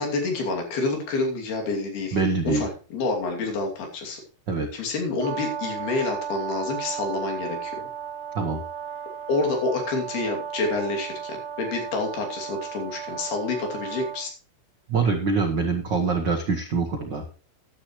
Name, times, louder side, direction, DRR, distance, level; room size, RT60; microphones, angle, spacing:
voice 1, 0.0-2.2 2.4-4.2 4.7-7.8 9.3-14.3, left 3 dB, 90° left, 1 dB, 4.7 m, -28 dB
voice 2, 2.1-2.6 4.5-4.7 8.3-8.6 14.9-17.2, right 4 dB, 90° right, 4 dB, 1.0 m, -24 dB
Brass instrument, 5.2-14.2, right 8 dB, 20° right, 2.2 m, -35 dB
14.0 x 11.0 x 3.2 m, 0.36 s
omnidirectional pair, 4.3 m